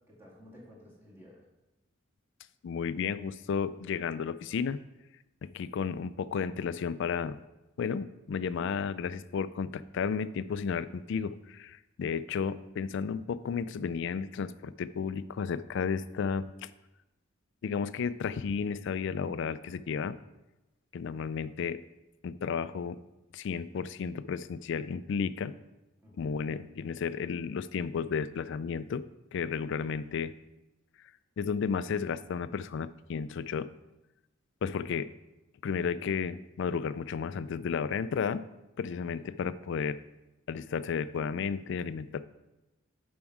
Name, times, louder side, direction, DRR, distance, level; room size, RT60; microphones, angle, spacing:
voice 1, 0.1-1.5 26.0-26.4 39.1-39.3, equal, 10° right, -5 dB, 2.0 m, -54 dB
voice 2, 2.6-4.8 5.5-7.4 7.8-16.7 17.6-20.2 20.9-21.8 22.2-23.0 23.3-25.5 26.2-29.0 29.3-30.3 31.4-33.7 34.6-35.1 35.6-38.4 38.8-40.0 40.5-42.2, left 6 dB, 60° left, 15 dB, 0.3 m, -33 dB
7.2 x 5.3 x 4.6 m, 1.0 s
head